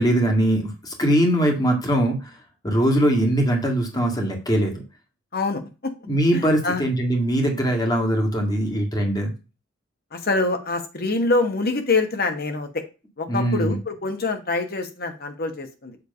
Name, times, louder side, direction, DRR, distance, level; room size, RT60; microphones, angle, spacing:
voice 1, 0.0-2.2 2.6-4.8 6.1-9.3 13.3-13.7, right 1 dB, 20° left, 2 dB, 1.8 m, -21 dB
voice 2, 5.3-5.9 6.3-6.9 10.1-12.8 13.2-16.0, left 3 dB, 50° left, 6 dB, 1.3 m, -25 dB
7.3 x 3.4 x 5.4 m, 0.30 s
head